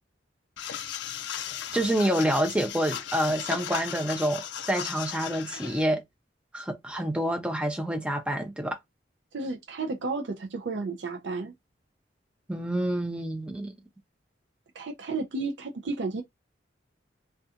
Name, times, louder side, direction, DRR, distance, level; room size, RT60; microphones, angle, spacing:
sound 1, 0.6-5.8, left 9 dB, 65° left, 0.3 m, -36 dB
voice 1, 1.7-6.0 6.5-8.8 12.5-13.7, right 1 dB, 5° right, 0.4 m, -27 dB
voice 2, 9.3-11.5 14.7-16.2, right 3 dB, 70° right, 0.5 m, -32 dB
2.4 x 2.2 x 2.7 m
head